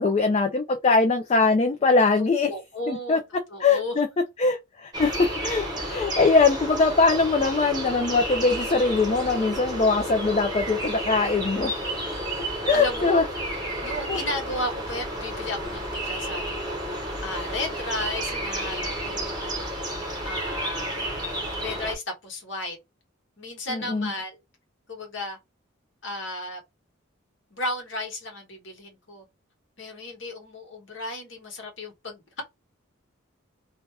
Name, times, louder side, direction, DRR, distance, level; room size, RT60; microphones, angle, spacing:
voice 1, 0.0-2.5 2.9-3.2 3.6-4.1 4.4-11.7 12.7-13.2 14.1-14.2 23.7-24.1, left 4 dB, 30° left, 0.3 m, -22 dB
voice 2, 2.2-3.2 3.5-4.0 12.7-13.2 13.8-19.8 20.2-20.9 21.6-22.8 23.4-24.4 24.9-25.4 26.0-26.6 27.5-29.2 29.8-32.4, left 1 dB, 60° left, 1.3 m, -34 dB
sound 1, 4.9-21.9, right 1 dB, 20° right, 0.8 m, -31 dB
2.7 x 2.2 x 3.3 m
head